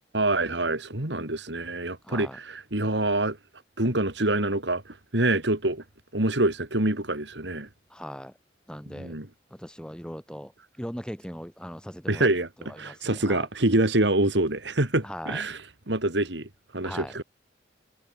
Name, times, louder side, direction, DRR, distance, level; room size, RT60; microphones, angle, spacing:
voice 1, 0.1-3.4 3.8-5.8 6.1-7.7 8.9-9.3 12.1-12.5 12.8-15.6 15.9-17.2, right 2 dB, 75° right, 3.2 m, -26 dB
voice 2, 2.0-2.4 7.9-8.3 8.7-9.2 9.5-10.5 10.8-12.3 12.6-13.5 15.0-15.4 16.8-17.1, equal, 5° left, 7.3 m, -39 dB
head